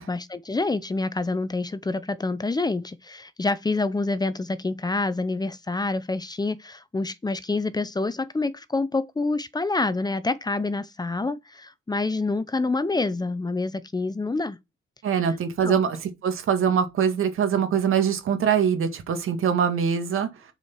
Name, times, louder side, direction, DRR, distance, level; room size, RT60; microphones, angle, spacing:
voice 1, 0.1-14.6 15.6-15.8, left 3 dB, 20° left, 0.7 m, -27 dB
voice 2, 15.0-20.3, right 7 dB, 75° right, 2.0 m, -23 dB
7.4 x 4.8 x 4.5 m
cardioid pair, 100°, 21 cm